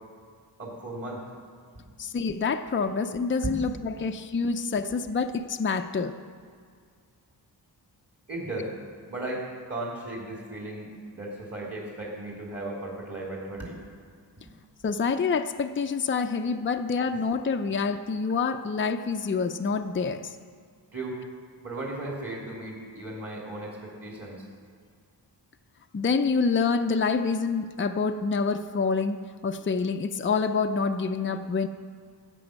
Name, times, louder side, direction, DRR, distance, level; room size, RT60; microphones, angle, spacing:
voice 1, 0.6-1.2 1.7-1.8 3.4-3.5 8.3-8.7 9.1-13.8 14.4-14.5 20.9-21.2 21.6-24.4, right 2 dB, 35° right, -3 dB, 2.9 m, -36 dB
voice 2, 2.0-6.1 14.8-20.4 25.9-31.7, left 5 dB, 30° left, 7 dB, 0.5 m, -27 dB
15.0 x 8.4 x 6.4 m, 2.1 s
wide cardioid pair, 120°, 43 cm